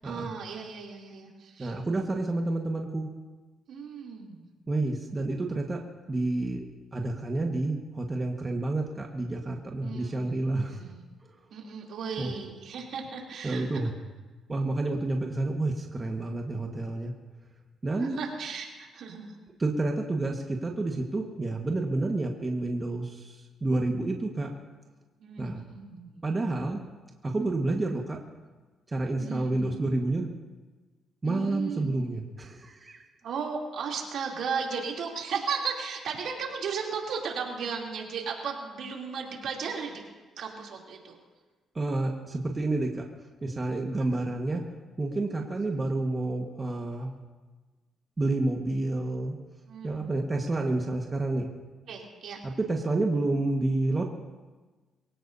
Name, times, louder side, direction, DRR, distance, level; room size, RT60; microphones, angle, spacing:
voice 1, 0.0-1.8 3.7-4.5 9.8-10.4 10.7-11.0 11.5-13.9 18.0-19.4 25.2-26.2 29.2-29.8 31.2-31.9 33.2-40.0 40.4-41.2 44.1-44.2 49.7-50.2 51.9-52.4, right 5 dB, 70° right, -1 dB, 3.1 m, -35 dB
voice 2, 1.6-3.1 4.7-5.8 6.1-6.6 6.9-10.8 11.2-11.3 12.2-12.3 13.4-13.9 14.5-17.1 17.8-18.2 19.6-24.5 25.4-25.6 26.2-26.8 27.2-28.2 28.9-30.3 31.2-33.0 41.7-43.0 43.4-44.6 45.0-47.1 48.2-49.3 49.8-51.5 52.4-54.0, right 2 dB, 25° right, 1 dB, 1.5 m, -29 dB
23.5 x 16.5 x 2.8 m, 1.3 s
cardioid pair, 90°, 0 cm